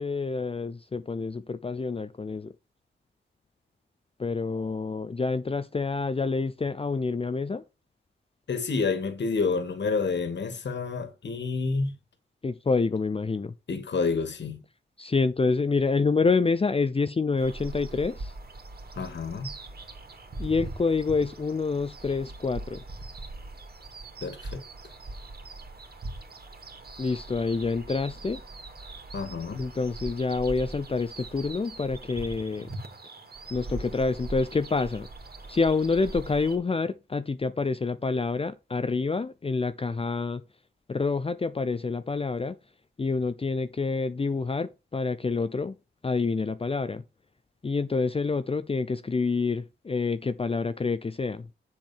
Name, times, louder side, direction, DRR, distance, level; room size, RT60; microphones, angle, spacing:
voice 1, 0.0-2.5 4.2-7.6 12.4-13.5 15.0-18.3 20.4-22.8 27.0-28.4 29.5-32.7 33.5-35.1 35.5-40.4 40.9-42.6 43.0-45.8 46.0-47.0 47.6-51.5, left 4 dB, 30° left, 0.7 m, -27 dB
voice 2, 8.5-11.9 13.7-14.6 19.0-19.5 24.2-24.6 29.1-29.6, left 4 dB, 60° left, 2.2 m, -29 dB
sound 1, 17.4-36.6, right 2 dB, 50° right, 2.7 m, -41 dB
7.6 x 7.5 x 4.4 m
cardioid pair, 85°, 21 cm